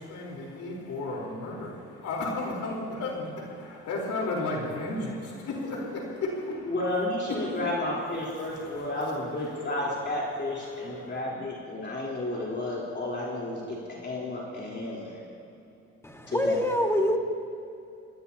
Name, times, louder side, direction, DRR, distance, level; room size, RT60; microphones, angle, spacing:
voice 1, 0.0-6.7 7.3-7.6 8.4-9.1 9.4-9.7 10.7-11.2, left 2 dB, 75° left, -2 dB, 4.2 m, -34 dB
voice 2, 6.6-13.8 14.0-15.3 16.3-16.6, left 1 dB, 35° left, -6 dB, 3.9 m, -32 dB
voice 3, 16.0-17.2, left 1 dB, 10° left, 3 dB, 1.7 m, -25 dB
23.5 x 19.0 x 2.9 m, 2.7 s
cardioid pair, 90°, 30 cm